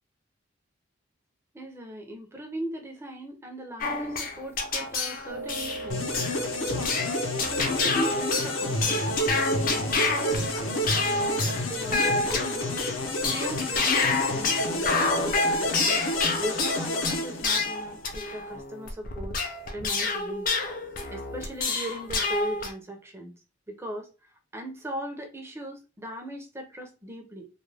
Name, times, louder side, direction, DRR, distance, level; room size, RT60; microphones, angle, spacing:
voice 1, 1.5-6.1 6.6-7.1 7.5-12.7 13.3-15.0 15.4-16.0 16.4-19.4 19.7-20.5 21.1-23.4 23.7-24.1 24.5-27.5, right 1 dB, 15° right, 0.5 m, -38 dB
sound 1, 3.8-22.7, left 3 dB, 45° left, 0.5 m, -28 dB
sound 2, 5.3-11.4, right 2 dB, 60° right, 0.6 m, -40 dB
sound 3, 5.9-18.0, left 1 dB, 85° left, 0.7 m, -30 dB
2.4 x 2.2 x 3.2 m
head